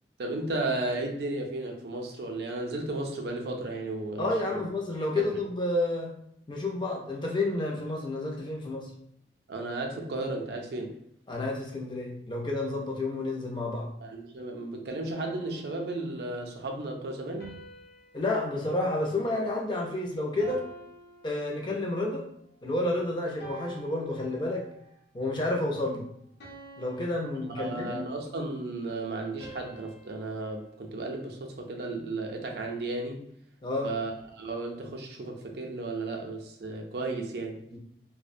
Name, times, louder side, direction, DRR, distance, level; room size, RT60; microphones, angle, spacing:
voice 1, 0.2-4.7 9.5-11.0 14.0-17.5 27.6-33.2 33.8-37.6, right 2 dB, 60° right, 2 dB, 0.4 m, -34 dB
voice 2, 4.2-6.1 6.5-8.9 11.3-13.9 18.1-20.6 21.2-22.3 22.6-24.6 25.1-26.1 26.8-28.0 33.6-33.9 37.7-37.8, left 2 dB, 25° left, -1 dB, 0.4 m, -30 dB
sound 1, 15.1-16.4 17.4-19.9 20.4-22.1 22.7-22.9 23.4-24.9 25.4-25.7 26.4-28.3 29.4-31.8, right 2 dB, 70° left, 0.7 m, -50 dB
2.4 x 2.1 x 2.5 m, 0.72 s
head